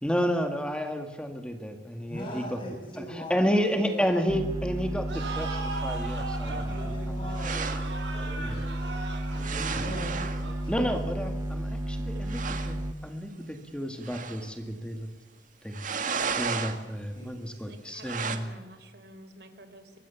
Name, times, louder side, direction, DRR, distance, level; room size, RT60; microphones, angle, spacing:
voice 1, 0.0-2.6 3.1-6.7 7.1-7.2 8.4-8.6 9.7-9.8 10.7-12.8 13.0-15.1 15.6-15.9 16.4-18.5, equal, 5° left, 5 dB, 2.0 m, -31 dB
voice 2, 2.1-4.1 6.4-7.7 8.1-8.7 9.3-10.9 17.1-17.6, equal, 30° left, -2 dB, 7.0 m, -41 dB
sound 1, 4.3-12.9, right 1 dB, 20° right, 0.8 m, -32 dB
sound 2, 5.1-11.5, right 3 dB, 85° right, 5.1 m, -39 dB
sound 3, 7.4-7.9 9.4-10.4 11.6-11.7 12.0-12.1 12.3-12.8 14.0-14.5 15.7-16.8 18.0-18.4, right 5 dB, 45° right, 2.0 m, -33 dB
voice 3, 17.7-19.9, right 1 dB, 65° right, 8 dB, 3.7 m, -50 dB
24.0 x 20.5 x 7.1 m, 1.2 s
head